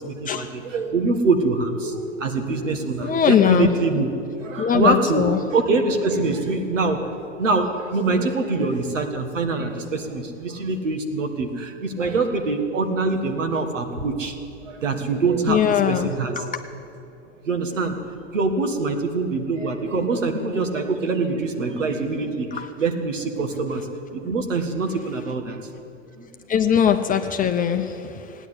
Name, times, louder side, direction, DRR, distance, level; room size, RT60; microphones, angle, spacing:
voice 1, 0.0-4.1 4.4-14.3 14.6-16.3 17.4-17.9 18.3-23.9 24.1-25.6 26.2-26.3, right 3 dB, 80° right, 5 dB, 1.7 m, -24 dB
voice 2, 3.0-3.7 4.6-5.4 15.5-16.1 16.4-16.5 22.5-22.7 26.5-28.5, left 8 dB, 20° left, 6 dB, 0.7 m, -20 dB
16.5 x 10.0 x 8.4 m, 2.7 s
hypercardioid pair, 95°, 37 cm